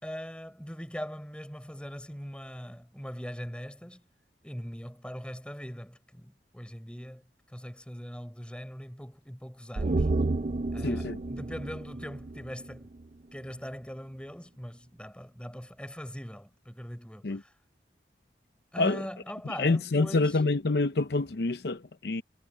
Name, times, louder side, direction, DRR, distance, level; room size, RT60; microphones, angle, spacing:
voice 1, 0.0-4.0 4.4-10.1 10.7-12.9 13.3-17.5 18.7-20.4, equal, 5° left, 4.2 m, -41 dB
sound 1, 9.8-13.2 13.5-13.6, right 2 dB, 40° right, 0.5 m, -31 dB
voice 2, 10.8-11.2 17.2-17.4 18.8-19.0 19.6-22.2, left 3 dB, 65° left, 0.7 m, -27 dB
head